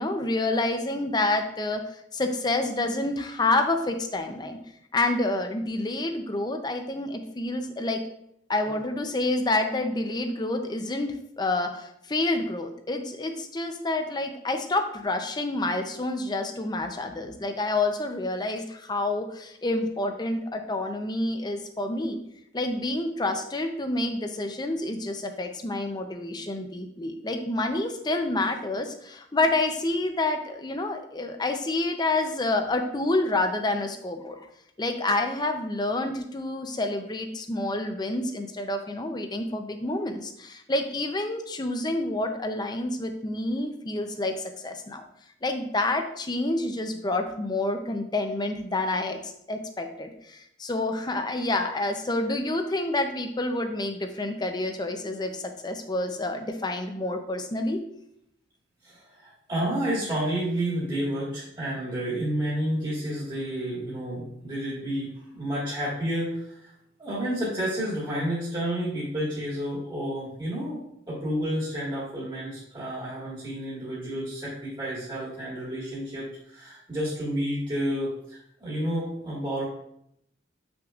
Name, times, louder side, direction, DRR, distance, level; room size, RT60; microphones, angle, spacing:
voice 1, 0.0-1.8 2.1-4.6 4.9-8.0 8.5-22.2 22.5-34.4 34.8-45.0 45.4-57.8, left 2 dB, 20° left, 6 dB, 0.6 m, -28 dB
voice 2, 58.8-66.7 67.0-70.8 71.1-79.6, right 1 dB, 25° right, -8 dB, 1.8 m, -30 dB
7.4 x 6.0 x 2.5 m, 0.75 s
head